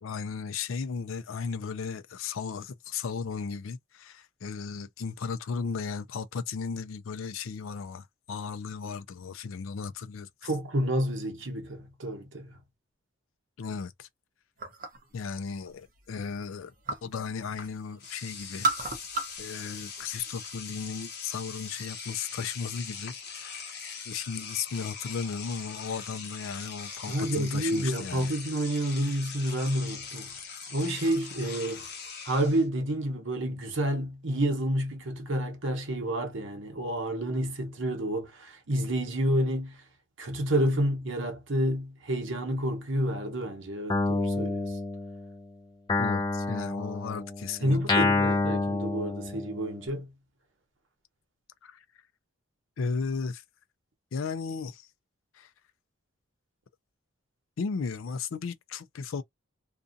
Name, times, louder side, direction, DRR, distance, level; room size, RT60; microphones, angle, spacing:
voice 1, 0.0-10.5 13.6-14.1 15.1-16.7 17.0-19.0 19.4-23.6 24.1-28.3 46.0-48.0 51.6-51.8 52.8-53.4 54.1-54.9 55.3-55.5 57.6-59.2, left 5 dB, 80° left, 0.4 m, -35 dB
voice 2, 10.4-12.5 27.1-30.3 30.7-31.9 32.2-39.8 40.2-44.8 47.6-50.1, right 1 dB, 70° right, 0.9 m, -29 dB
sound 1, 14.6-15.1 15.5-17.2 17.5-18.1 18.4-19.5 19.8-20.6, right 3 dB, 40° right, 0.7 m, -33 dB
Engine / Domestic sounds home sounds, 17.6-17.7 18.0-32.7, left 6 dB, 50° left, 1.0 m, -41 dB
Guitar, 43.9-45.4 45.9-49.8, left 3 dB, 20° left, 0.5 m, -28 dB
2.6 x 2.4 x 2.5 m
head